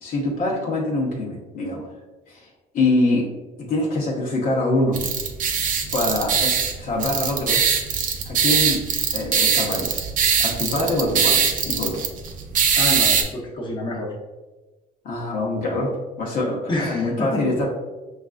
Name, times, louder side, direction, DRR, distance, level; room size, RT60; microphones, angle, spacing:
voice 1, 0.0-1.9 2.3-2.5 2.7-3.3 3.6-5.0 5.9-7.6 8.2-8.8 9.1-10.0 10.4-12.1 15.0-17.7, left 2 dB, 55° left, -3 dB, 0.9 m, -24 dB
sound 1, 4.9-13.2, right 6 dB, 50° right, 0.5 m, -22 dB
voice 2, 12.8-14.1 16.7-17.4, left 1 dB, 30° left, -4 dB, 1.0 m, -27 dB
5.9 x 2.5 x 2.4 m, 1.2 s
cardioid pair, 110°, 17 cm